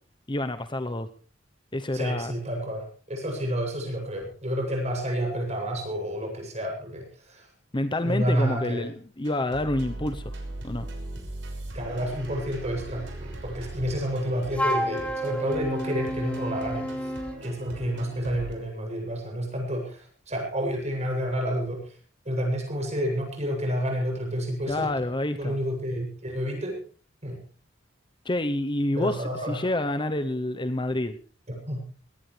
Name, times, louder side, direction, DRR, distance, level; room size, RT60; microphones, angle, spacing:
voice 1, 0.3-1.1 1.7-2.3 7.7-10.2 10.6-10.9 24.7-25.6 28.2-31.2, left 1 dB, 25° left, 10 dB, 0.9 m, -28 dB
voice 2, 1.9-7.5 8.0-8.9 11.7-17.1 17.4-21.8 22.2-24.9 25.4-26.8 27.2-27.4 29.0-29.7 31.5-31.8, equal, 35° right, 1 dB, 7.8 m, -30 dB
sound 1, 9.2-18.5, right 1 dB, 70° right, 6.1 m, -39 dB
Wind instrument woodwind instrument, 14.5-17.4, equal, 5° left, 1.5 m, -30 dB
20.0 x 18.0 x 3.4 m, 0.41 s
head